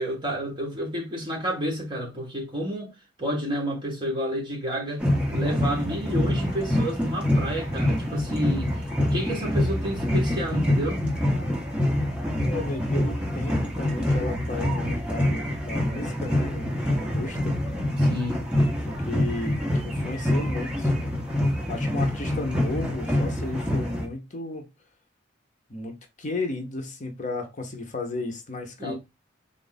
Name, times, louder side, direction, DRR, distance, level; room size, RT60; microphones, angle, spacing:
voice 1, 0.0-2.9 3.2-8.7 9.0-11.0 18.0-18.5 28.8-28.9, equal, 25° right, 1.3 m, -30 dB
sound 1, 5.0-24.1, left 1 dB, 5° right, 0.9 m, -26 dB
voice 2, 12.4-17.6 18.8-20.9 21.7-24.7 25.7-28.9, left 2 dB, 40° left, 0.8 m, -34 dB
3.5 x 2.5 x 4.0 m
head